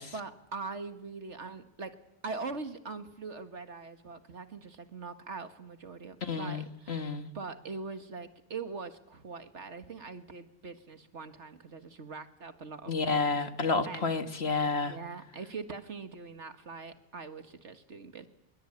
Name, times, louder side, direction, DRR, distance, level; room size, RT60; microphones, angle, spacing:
voice 1, 0.1-2.0 2.2-13.3 13.9-14.1 14.8-18.3, right 4 dB, 75° right, 8 dB, 2.1 m, -42 dB
voice 2, 6.2-7.3 12.9-15.0, left 4 dB, 60° left, 8 dB, 2.1 m, -30 dB
27.0 x 23.0 x 8.9 m, 0.83 s
omnidirectional pair, 1.2 m